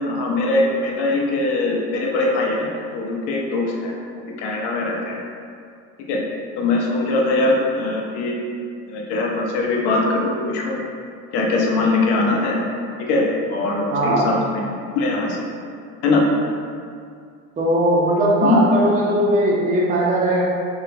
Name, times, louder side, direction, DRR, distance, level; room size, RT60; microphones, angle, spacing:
voice 1, 0.0-5.2 6.1-6.2 6.6-8.4 8.9-10.8 11.3-12.6 13.0-13.2 13.5-14.7 15.0-15.4 16.0-16.2 18.4-18.6, left 2 dB, 55° left, -1 dB, 0.8 m, -21 dB
voice 2, 13.9-14.3 17.6-20.4, right 1 dB, 15° right, -5 dB, 0.5 m, -19 dB
3.6 x 2.0 x 3.3 m, 2.3 s
hypercardioid pair, 95°, 48 cm